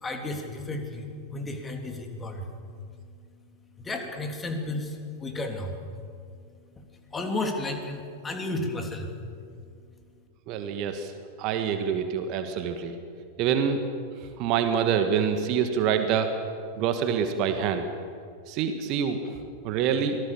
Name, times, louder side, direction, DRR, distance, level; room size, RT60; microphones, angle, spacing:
voice 1, 0.0-2.5 3.8-5.8 6.8-6.9 7.1-9.1, left 2 dB, 15° left, 4 dB, 3.3 m, -33 dB
voice 2, 10.5-11.1 11.4-13.0 13.4-13.8 14.4-16.4 16.8-17.9 18.5-19.3 19.6-20.2, right 7 dB, 40° right, 7 dB, 1.8 m, -26 dB
25.5 x 18.5 x 7.3 m, 2.3 s
figure-of-eight pair, 90°, 0 cm